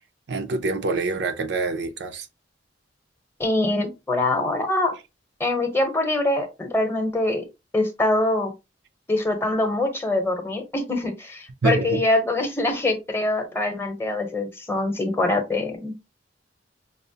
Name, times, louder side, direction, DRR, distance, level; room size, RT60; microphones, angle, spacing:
voice 1, 0.3-2.3 11.6-12.0, right 3 dB, 65° right, 0.5 m, -25 dB
voice 2, 3.4-4.9 5.4-7.4 7.7-8.5 9.1-16.1, left 2 dB, 15° left, 0.7 m, -24 dB
5.3 x 2.0 x 2.7 m
head